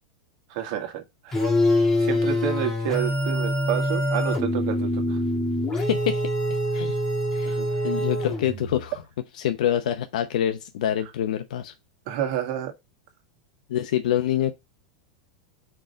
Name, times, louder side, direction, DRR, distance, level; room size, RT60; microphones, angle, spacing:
voice 1, 0.5-1.4 2.0-5.2 7.4-7.7 12.1-12.7, right 11 dB, 45° right, 1.6 m, -29 dB
sound 1, 1.3-8.8, left 1 dB, 15° left, 1.4 m, -24 dB
voice 2, 5.7-6.2 6.7-7.0 7.3-7.6 7.8-8.9 9.4-11.7 13.7-14.5, left 10 dB, 75° left, 0.7 m, -26 dB
4.6 x 3.8 x 5.4 m
supercardioid pair, 165°, 4 cm